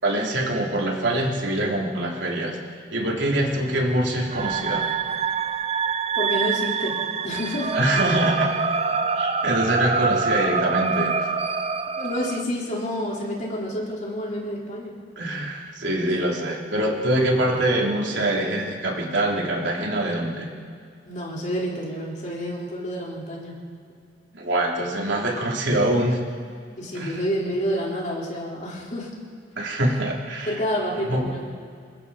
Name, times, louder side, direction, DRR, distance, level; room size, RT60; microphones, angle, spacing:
voice 1, 0.0-2.6 2.9-4.9 7.7-8.5 9.2-11.3 15.1-20.5 24.3-26.3 26.9-27.2 29.5-30.5 31.1-31.3, right 1 dB, 80° right, -1 dB, 3.4 m, -24 dB
sound 1, 4.3-12.4, right 5 dB, 35° right, 0.7 m, -25 dB
voice 2, 6.1-7.8 12.0-15.0 16.0-16.1 21.1-23.6 26.8-29.1 30.5-31.5, equal, 45° left, -4 dB, 4.5 m, -29 dB
28.0 x 21.5 x 4.3 m, 2.3 s
head